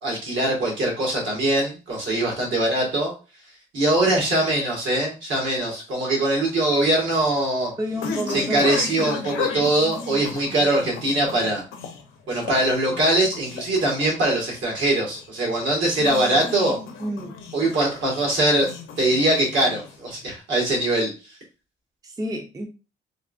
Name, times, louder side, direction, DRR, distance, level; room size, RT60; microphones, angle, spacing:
voice 1, 0.0-3.1 3.7-7.7 8.3-11.6 12.3-16.8 17.5-18.7 19.0-21.1, right 1 dB, 70° right, -2 dB, 1.6 m, -22 dB
sound 1, 6.7-20.2, left 5 dB, 90° left, 0.6 m, -35 dB
voice 2, 7.8-8.8 17.0-17.4 22.0-22.7, right 1 dB, 20° right, 2 dB, 0.6 m, -29 dB
3.5 x 2.3 x 2.5 m, 0.31 s
cardioid pair, 90°, 20 cm